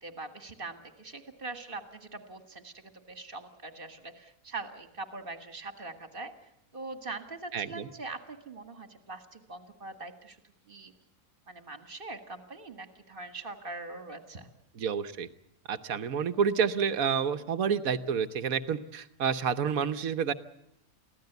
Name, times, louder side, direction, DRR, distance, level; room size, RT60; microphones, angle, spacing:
voice 1, 0.0-2.7 3.1-6.3 6.7-10.4 10.7-10.9 11.5-14.5, right 3 dB, 40° right, 8 dB, 2.0 m, -42 dB
voice 2, 7.5-7.9 14.7-15.3 15.7-20.3, right 7 dB, 75° right, 11 dB, 1.4 m, -29 dB
24.0 x 16.0 x 8.1 m, 0.81 s
omnidirectional pair, 1.5 m